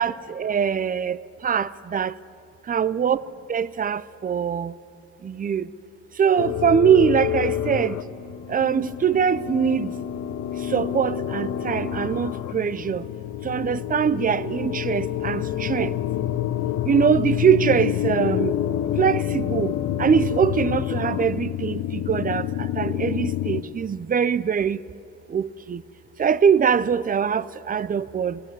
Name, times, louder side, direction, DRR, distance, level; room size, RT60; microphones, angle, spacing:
voice 1, 0.0-2.1 2.7-3.2 3.5-4.7 5.2-5.7 6.2-8.0 8.5-9.9 10.7-13.0 13.4-16.0 16.9-18.6 19.0-19.7 20.0-24.8 25.3-25.8 26.2-28.4, right 7 dB, 30° right, 0.6 m, -22 dB
sound 1, 6.4-23.6, left 11 dB, 85° left, 0.9 m, -28 dB
21.0 x 16.0 x 9.4 m
cardioid pair, 90°, 30 cm